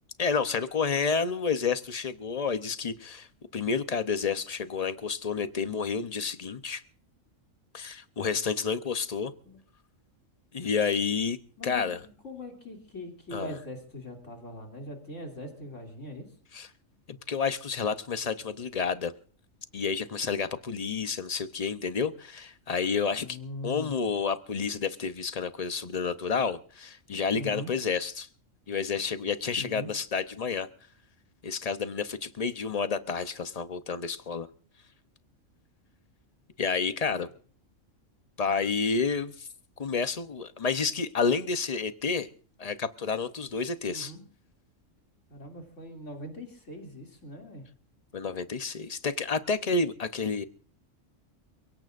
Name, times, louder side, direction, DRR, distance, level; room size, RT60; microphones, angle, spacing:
voice 1, 0.2-3.3 3.5-6.8 7.7-9.3 10.5-11.4 11.6-12.0 13.3-13.6 16.5-16.7 17.1-19.1 19.7-23.4 23.6-28.3 28.7-30.7 31.4-34.5 36.6-37.3 38.4-39.5 39.8-42.3 42.6-44.1 48.1-50.4, left 5 dB, 35° left, 0.7 m, -30 dB
voice 2, 11.6-11.9 12.2-16.3 23.2-24.0 27.3-27.7 29.5-29.9 43.9-44.2 45.3-47.7, left 1 dB, 70° left, 3.2 m, -41 dB
29.0 x 17.0 x 2.5 m
omnidirectional pair, 1.3 m